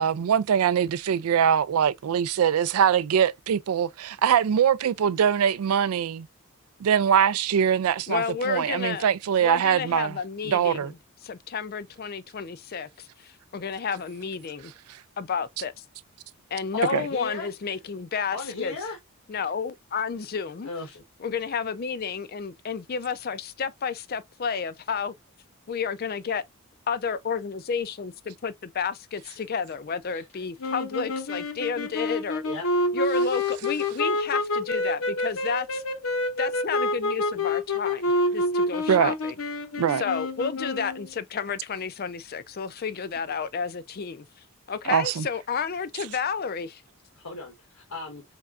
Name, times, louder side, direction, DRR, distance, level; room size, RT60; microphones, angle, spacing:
voice 1, 0.0-6.3 6.8-10.2 10.5-10.9 16.9-17.0 38.9-39.1 39.8-40.0 44.9-45.3, right 8 dB, 75° right, 0.3 m, -23 dB
voice 2, 8.1-9.1 9.4-11.0 11.2-14.7 15.2-15.8 16.5-18.8 19.3-20.7 21.2-25.1 25.7-26.4 26.9-32.4 32.9-35.8 36.4-39.3 40.0-44.3 44.7-46.8, left 6 dB, 40° left, 0.4 m, -31 dB
voice 3, 16.7-17.5 18.3-19.0 20.6-21.0 30.1-30.2 32.4-32.6 47.2-48.2, left 3 dB, 85° left, 1.2 m, -36 dB
sound 1, 30.6-41.1, left 1 dB, 65° left, 0.7 m, -28 dB
4.3 x 3.4 x 2.4 m
head